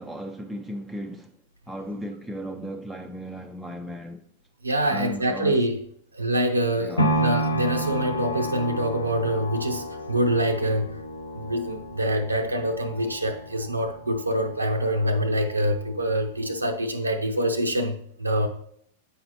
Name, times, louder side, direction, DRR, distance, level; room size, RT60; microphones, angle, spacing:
voice 1, 0.0-1.3 1.7-4.2 4.9-5.6 6.8-7.2, equal, ahead, 0.4 m, -35 dB
voice 2, 4.6-5.8 6.1-10.9 11.3-18.5, right 1 dB, 85° right, 0.5 m, -25 dB
sound 1, 7.0-15.1 15.6-15.7, right 1 dB, 80° left, 0.8 m, -30 dB
8.4 x 4.8 x 3.0 m
figure-of-eight pair, 95°, 0 cm